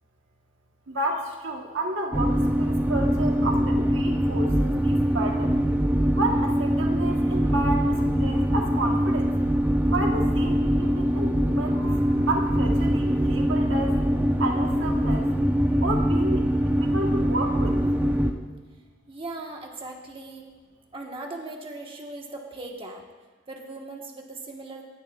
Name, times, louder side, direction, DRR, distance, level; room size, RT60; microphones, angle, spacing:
voice 1, 0.9-5.7 6.2-9.3 9.9-14.0 14.4-15.3 15.8-17.8, right 2 dB, 90° right, 2 dB, 1.2 m, -31 dB
sound 1, 2.1-18.3, equal, 10° right, 0.7 m, -23 dB
voice 2, 19.1-20.4 20.9-23.0 23.5-24.9, right 2 dB, 30° right, 0 dB, 1.3 m, -38 dB
18.5 x 10.5 x 2.4 m, 1.3 s
head